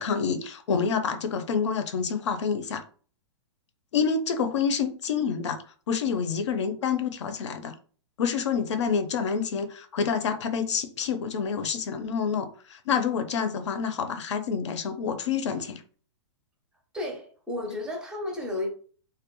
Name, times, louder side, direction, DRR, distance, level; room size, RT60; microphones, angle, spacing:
voice 1, 0.0-2.8 3.9-5.6 5.9-7.7 8.2-15.8, left 6 dB, 75° left, 0.5 m, -28 dB
voice 2, 16.9-18.7, left 2 dB, 5° right, 0.5 m, -32 dB
2.2 x 2.0 x 2.9 m
hypercardioid pair, 145°, 15 cm